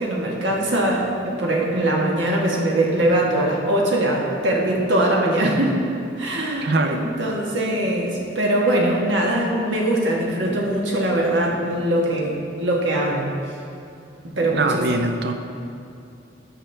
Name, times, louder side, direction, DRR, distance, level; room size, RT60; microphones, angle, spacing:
voice 1, 0.0-5.8 6.2-13.3 14.2-14.8, right 1 dB, 75° right, -2 dB, 1.4 m, -22 dB
voice 2, 6.6-7.0 14.5-15.3, right 2 dB, 55° right, 6 dB, 0.5 m, -22 dB
12.5 x 5.9 x 3.4 m, 2.5 s
head